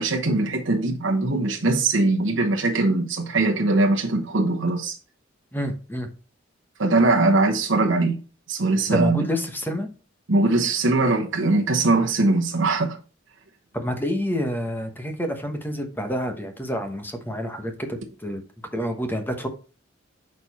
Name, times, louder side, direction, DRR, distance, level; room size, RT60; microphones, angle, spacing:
voice 1, 0.0-4.9 6.8-8.2 8.5-9.3 10.3-13.0, right 2 dB, 70° right, 1.0 m, -21 dB
voice 2, 5.5-6.1 8.9-9.9 13.7-18.4 18.7-19.5, equal, 10° left, 1.1 m, -28 dB
6.6 x 4.3 x 4.1 m
head